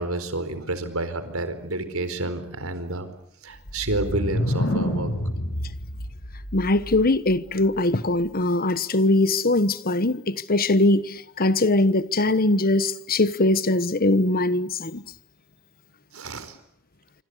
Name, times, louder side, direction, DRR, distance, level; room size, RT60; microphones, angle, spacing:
voice 1, 0.0-3.1 3.4-5.1 16.1-16.6, right 2 dB, 80° right, 4.5 m, -29 dB
sound 1, 3.6-7.4, left 1 dB, 60° left, 7.3 m, -28 dB
voice 2, 6.5-15.0, left 2 dB, 45° left, 1.3 m, -21 dB
26.5 x 26.0 x 8.2 m
head